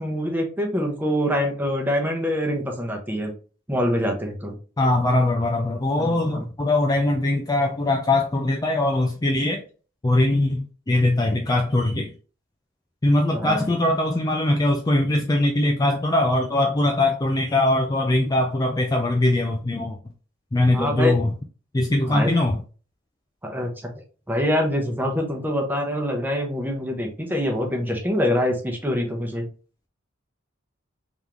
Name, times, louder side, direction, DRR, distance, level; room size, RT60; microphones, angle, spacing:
voice 1, 0.0-3.3 3.7-4.6 6.0-6.5 13.3-13.6 20.7-21.1 22.1-22.3 23.4-23.7 24.3-29.4, left 1 dB, 10° right, 2 dB, 0.9 m, -25 dB
voice 2, 4.8-9.6 10.0-12.1 13.0-20.1 20.5-21.4 21.7-22.6, left 1 dB, 20° left, 3 dB, 0.4 m, -21 dB
3.7 x 3.6 x 3.0 m, 0.37 s
head